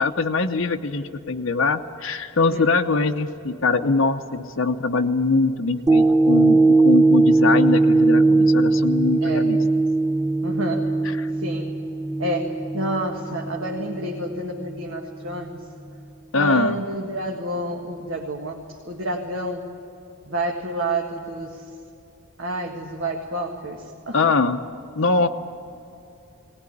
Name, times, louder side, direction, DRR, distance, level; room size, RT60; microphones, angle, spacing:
voice 1, 0.0-9.6 11.2-11.3 16.3-16.8 24.1-24.6 25.0-25.3, left 3 dB, 60° left, 6 dB, 0.8 m, -22 dB
sound 1, 5.9-14.3 14.8-14.9, right 3 dB, 15° right, 0.6 m, -19 dB
voice 2, 9.2-9.5 10.4-10.9 11.4-11.8 12.2-15.7 16.3-19.7 20.3-21.7 22.4-24.3, right 1 dB, 60° right, 0 dB, 1.7 m, -29 dB
19.5 x 19.0 x 9.9 m, 2.7 s
head